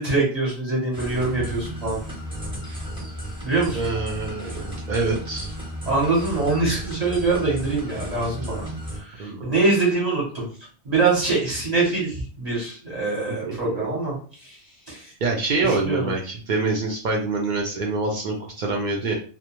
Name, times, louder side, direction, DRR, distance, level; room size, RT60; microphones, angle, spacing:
voice 1, 0.0-2.0 3.4-3.9 5.9-8.7 9.0-10.5 10.8-14.1 14.4-14.6 14.9-15.1 15.6-16.0, right 3 dB, 40° right, -5 dB, 0.9 m, -24 dB
sound 1, 0.9-9.0, equal, 5° right, 0.5 m, -34 dB
voice 2, 3.7-5.5 9.2-9.6 13.2-13.9 15.2-19.1, right 3 dB, 60° right, -1 dB, 0.5 m, -26 dB
2.2 x 2.2 x 2.9 m, 0.41 s
omnidirectional pair, 1.2 m